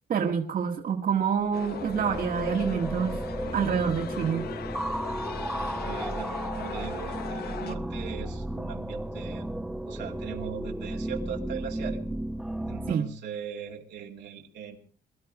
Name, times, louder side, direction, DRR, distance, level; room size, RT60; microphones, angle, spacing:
voice 1, 0.1-3.2 3.5-4.4 12.9-13.1, right 7 dB, 55° right, 3 dB, 1.7 m, -27 dB
sound 1, 1.4-12.9, right 1 dB, ahead, 0.9 m, -34 dB
sound 2, 1.5-7.8, left 9 dB, 70° left, 0.9 m, -40 dB
voice 2, 5.5-9.5 9.8-12.0 12.7-14.8, right 7 dB, 85° right, 1 dB, 2.7 m, -40 dB
22.0 x 12.5 x 4.9 m, 0.40 s
cardioid pair, 100°, 17 cm